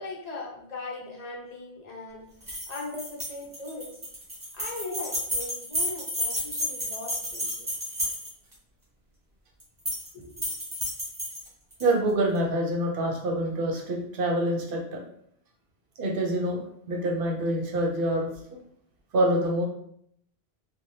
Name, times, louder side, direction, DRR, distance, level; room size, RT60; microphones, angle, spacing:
voice 1, 0.0-2.2 2.7-4.0 4.5-7.7 10.1-10.5, left 3 dB, 45° left, -2 dB, 0.7 m, -39 dB
sound 1, 2.4-8.5 9.6-10.1 10.4-11.9, equal, 20° right, 0.8 m, -32 dB
voice 2, 11.8-15.0 16.0-18.6 19.1-19.6, right 1 dB, 60° right, 0 dB, 0.8 m, -26 dB
3.2 x 2.2 x 2.7 m, 0.70 s
omnidirectional pair, 1.1 m